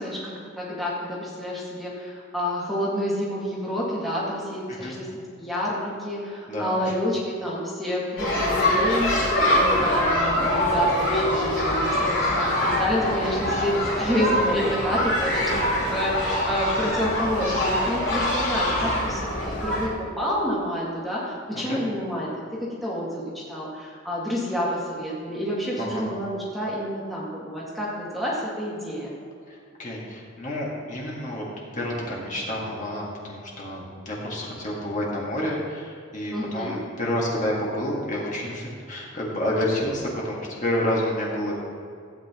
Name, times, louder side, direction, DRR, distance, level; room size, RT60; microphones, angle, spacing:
voice 1, 0.0-5.1 5.4-22.3 22.6-29.1 36.3-36.8, equal, ahead, -7 dB, 1.8 m, -29 dB
sound 1, 8.2-19.9, left 1 dB, 60° left, 3.0 m, -24 dB
voice 2, 25.8-26.1 29.5-31.4 31.7-41.6, left 1 dB, 35° left, -4 dB, 1.8 m, -29 dB
16.0 x 8.8 x 3.0 m, 2.3 s
head